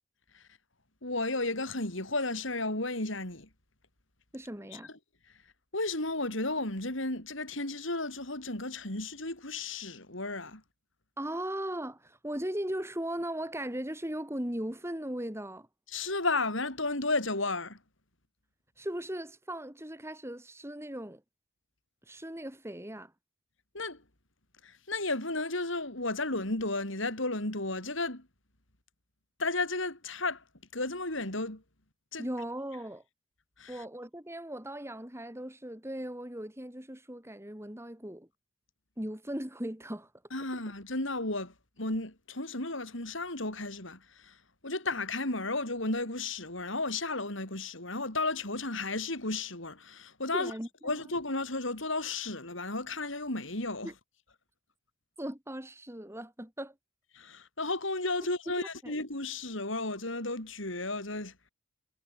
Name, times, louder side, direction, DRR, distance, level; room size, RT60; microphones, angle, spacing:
voice 1, 1.0-3.5 4.7-4.8 5.7-10.6 15.9-17.8 23.7-24.0 24.6-28.3 29.4-30.4 30.7-31.6 32.1-32.3 33.6-33.8 40.3-44.4 44.6-50.5 50.8-53.9 57.1-61.5, left 2 dB, 65° left, 5.8 m, -33 dB
voice 2, 4.3-4.9 11.2-15.7 18.8-21.2 22.1-23.1 32.2-33.0 33.7-38.3 39.0-40.1 50.3-50.7 51.0-51.1 53.8-53.9 55.2-56.7 58.6-59.0, right 1 dB, 15° right, 4.1 m, -38 dB
head